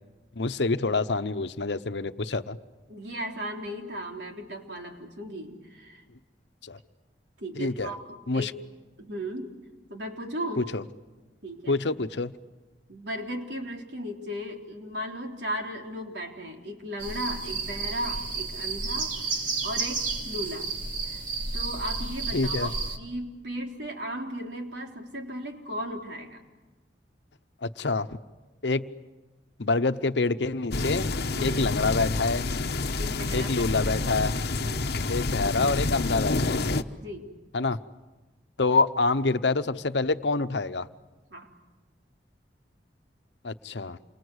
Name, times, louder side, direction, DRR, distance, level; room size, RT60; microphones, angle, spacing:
voice 1, 0.4-2.6 6.6-6.8 7.6-7.9 8.3-8.5 10.6-10.8 11.7-12.3 22.3-22.7 27.6-28.1 28.6-28.9 29.6-31.1 31.4-32.5 33.3-34.4 35.1-36.6 37.5-37.8 38.6-40.9 43.4-44.0, left 3 dB, 80° left, 12 dB, 0.9 m, -26 dB
voice 2, 2.9-6.0 7.4-8.5 9.0-9.5 9.9-10.7 11.4-11.8 12.9-20.7 21.0-21.2 21.5-26.4 31.3-31.7 33.0-33.6 33.9-34.0 34.6-35.0 37.0-37.3 41.3-41.5, equal, 75° right, 2 dB, 3.7 m, -36 dB
sound 1, 17.0-23.0, right 4 dB, 50° right, 2.9 m, -32 dB
sound 2, 30.7-36.8, left 3 dB, 65° left, 1.0 m, -28 dB
28.5 x 24.5 x 8.1 m, 1.2 s
head